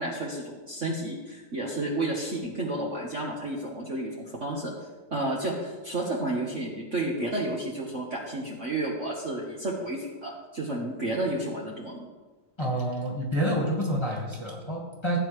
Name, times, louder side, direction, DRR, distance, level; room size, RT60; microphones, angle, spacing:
voice 1, 0.0-4.7 5.1-12.1, right 2 dB, 40° right, -3 dB, 1.4 m, -31 dB
voice 2, 12.6-15.2, equal, 15° left, -3 dB, 1.9 m, -28 dB
16.0 x 9.2 x 3.3 m, 1.3 s
omnidirectional pair, 2.2 m